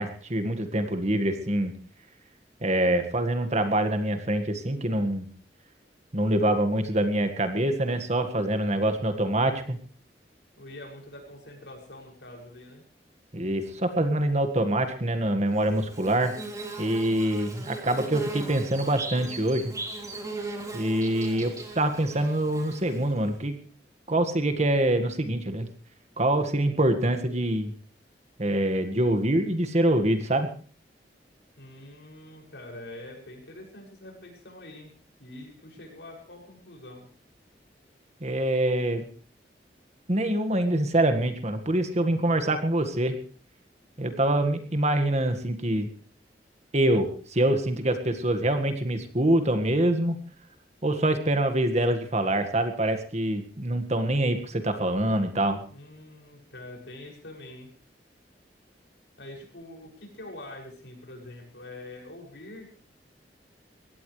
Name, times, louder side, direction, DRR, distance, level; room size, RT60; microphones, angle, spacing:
voice 1, 0.0-1.7 2.6-5.3 6.1-9.8 13.3-16.3 16.8-19.7 20.7-23.6 24.1-25.7 26.2-27.7 28.4-30.5 38.2-39.1 40.1-43.2 44.0-45.9 46.7-50.2 50.8-55.6, right 1 dB, 40° right, 8 dB, 1.8 m, -25 dB
voice 2, 10.5-12.8 31.6-34.9 35.2-37.1 55.7-57.7 59.2-62.7, left 1 dB, 80° left, 0 dB, 6.8 m, -44 dB
Bird / Buzz, 15.6-23.3, right 2 dB, 20° right, 3.3 m, -38 dB
22.5 x 17.0 x 3.3 m, 0.42 s
head